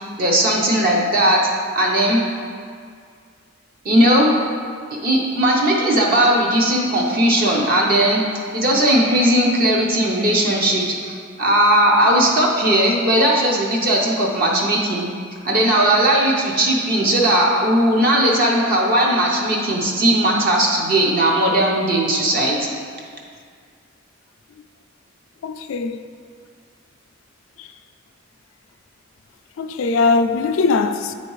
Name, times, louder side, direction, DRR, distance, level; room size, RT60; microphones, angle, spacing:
voice 1, 0.2-1.4 1.7-2.2 3.8-4.3 5.0-8.2 8.5-15.1 15.4-22.7, right 1 dB, 50° right, 0.7 m, -17 dB
voice 2, 25.4-26.0 27.6-27.7 29.6-31.1, left 4 dB, 85° left, 0.3 m, -20 dB
8.8 x 4.2 x 3.1 m
head